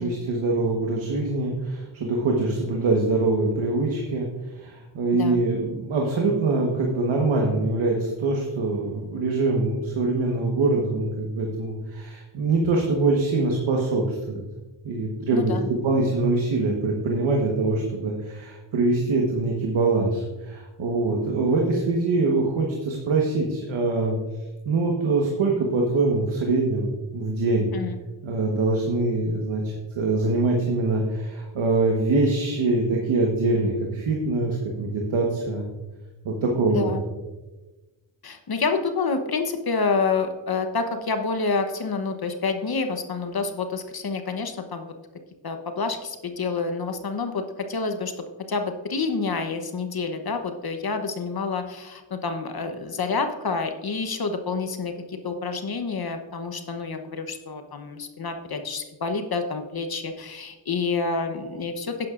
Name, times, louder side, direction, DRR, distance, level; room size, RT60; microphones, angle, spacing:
voice 1, 0.0-4.3 4.6-14.4 14.8-24.2 24.6-27.7 28.2-35.6 36.2-36.9, right 3 dB, 75° right, 0 dB, 1.4 m, -24 dB
voice 2, 15.3-15.7 27.7-27.9 36.7-37.0 38.2-44.9 45.4-48.1 48.5-62.1, left 4 dB, 50° left, 7 dB, 1.0 m, -28 dB
10.5 x 9.7 x 2.5 m, 1.2 s
cardioid pair, 55°, 47 cm